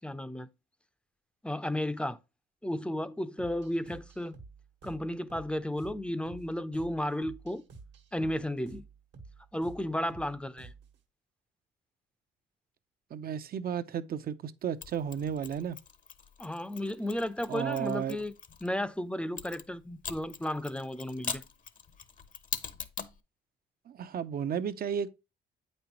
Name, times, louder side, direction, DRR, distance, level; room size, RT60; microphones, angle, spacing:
voice 1, 0.0-0.5 1.4-2.2 2.6-4.3 4.8-7.6 8.1-8.8 9.5-10.7 16.4-18.3 18.6-21.4, left 1 dB, 5° left, 0.6 m, -33 dB
sound 1, 3.4-11.0, right 4 dB, 75° right, 1.5 m, -51 dB
voice 2, 13.1-15.8 17.5-18.2 23.9-25.1, right 8 dB, 55° right, 0.7 m, -33 dB
Mechanisms, 14.8-18.7 19.4-23.2, left 6 dB, 45° left, 0.9 m, -42 dB
8.5 x 5.5 x 3.0 m
cardioid pair, 90°, 19 cm